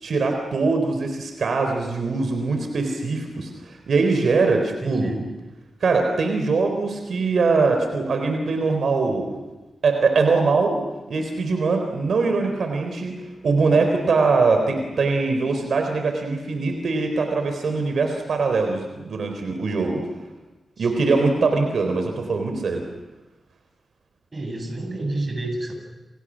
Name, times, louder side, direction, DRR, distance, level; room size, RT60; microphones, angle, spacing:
voice 1, 0.0-5.1 5.8-9.3 9.8-10.8 11.1-13.2 13.4-20.0 20.8-22.9, right 4 dB, 75° right, 5 dB, 3.9 m, -22 dB
voice 2, 4.8-5.3 20.8-20.9 24.3-25.7, right 2 dB, 30° right, 4 dB, 7.6 m, -29 dB
29.5 x 28.5 x 6.4 m, 1.1 s
wide cardioid pair, 105°, 0 cm